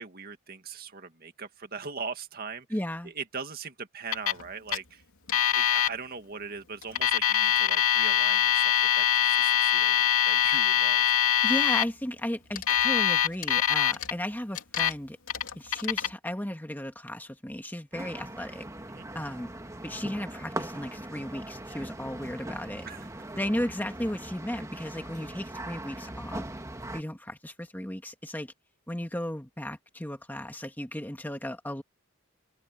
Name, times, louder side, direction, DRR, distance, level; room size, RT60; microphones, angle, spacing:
voice 1, 0.0-2.7 3.2-5.0 5.5-11.0 18.9-19.0 22.9-23.1, right 5 dB, 45° right, 2.1 m, -40 dB
voice 2, 2.7-3.1 11.4-15.2 15.5-18.6 19.1-19.5 19.8-22.9 23.4-26.4 26.9-28.5 28.9-31.8, left 1 dB, 10° left, 1.6 m, -35 dB
Alarm, 4.1-4.4 4.7-4.8 5.3-5.9 6.8-11.8 12.6-14.1 14.5-14.9 15.3-16.1, left 10 dB, 90° left, 2.8 m, -24 dB
sound 1, 17.9-27.0, right 1 dB, 15° right, 1.6 m, -40 dB
open air
head